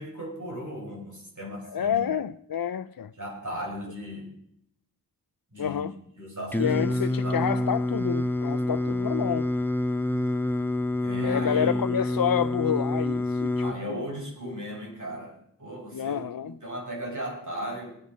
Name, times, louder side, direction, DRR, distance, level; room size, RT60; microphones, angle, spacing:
voice 1, 0.0-2.1 3.2-4.3 5.5-7.7 11.0-11.8 13.6-18.0, equal, 55° right, 5.3 m, -37 dB
voice 2, 1.6-3.1 5.6-5.9 6.6-9.5 11.2-14.1 15.9-16.5, left 8 dB, 75° left, 0.5 m, -29 dB
Singing, 6.5-13.7, left 2 dB, 5° left, 1.0 m, -27 dB
18.5 x 10.0 x 5.4 m
wide cardioid pair, 40°, 35 cm